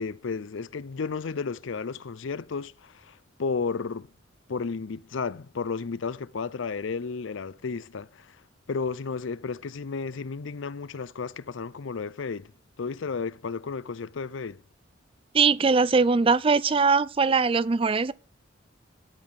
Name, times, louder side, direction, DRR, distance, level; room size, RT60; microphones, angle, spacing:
voice 1, 0.0-4.1 4.5-8.4 8.7-12.5 12.8-14.6, left 5 dB, 65° left, 0.5 m, -33 dB
voice 2, 15.3-18.1, right 4 dB, 25° right, 0.4 m, -21 dB
12.5 x 5.7 x 6.3 m
head